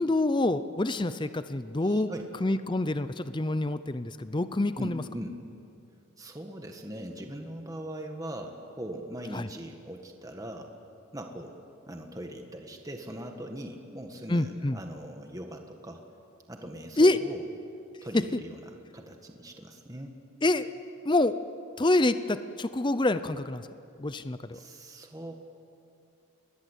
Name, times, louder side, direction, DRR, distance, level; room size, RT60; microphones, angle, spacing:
voice 1, 0.0-2.1 2.4-5.0 9.3-9.5 14.3-14.8 17.0-17.2 18.1-18.2 20.4-20.7 21.0-21.4 21.8-23.7 24.0-24.6, left 2 dB, 20° left, 12 dB, 0.6 m, -26 dB
voice 2, 1.8-2.3 4.8-5.4 6.2-10.7 11.1-11.5 11.9-16.0 16.5-17.4 18.0-20.2 24.5-25.3, right 1 dB, 15° right, 4 dB, 1.6 m, -40 dB
29.5 x 21.0 x 8.3 m, 2.6 s
head